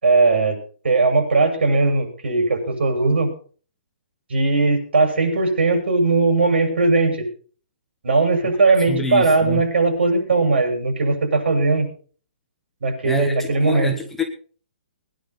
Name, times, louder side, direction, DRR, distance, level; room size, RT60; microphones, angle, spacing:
voice 1, 0.0-0.6 0.8-3.3 4.3-7.2 8.0-11.9 12.8-13.9, right 3 dB, 75° right, 6.8 m, -19 dB
voice 2, 8.6-9.6 13.0-14.2, left 3 dB, 5° left, 1.0 m, -27 dB
21.0 x 10.5 x 4.2 m
hypercardioid pair, 180°, 6 cm